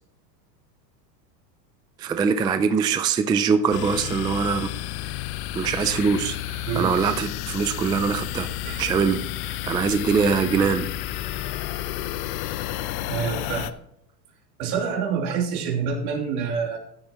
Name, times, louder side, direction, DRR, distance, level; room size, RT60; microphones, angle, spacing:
voice 1, 2.0-4.7 5.5-8.5 8.8-10.9, right 6 dB, 10° right, 9 dB, 0.3 m, -23 dB
sound 1, 3.7-13.7, left 13 dB, 50° left, 0.9 m, -31 dB
voice 2, 13.1-13.8 14.6-16.8, right 6 dB, 65° right, 0 dB, 3.2 m, -27 dB
14.5 x 10.5 x 3.0 m, 0.73 s
hypercardioid pair, 110°, 50 cm